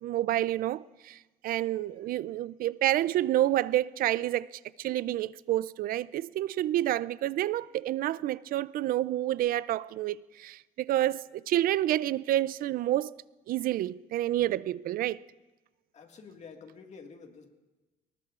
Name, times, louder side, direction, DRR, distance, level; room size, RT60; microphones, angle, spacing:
voice 1, 0.0-4.5 4.8-13.1 13.5-15.2, right 13 dB, 60° right, 0.4 m, -29 dB
voice 2, 15.9-17.5, left 5 dB, 40° left, 1.8 m, -49 dB
23.0 x 19.5 x 2.5 m
cardioid pair, 110°, 17 cm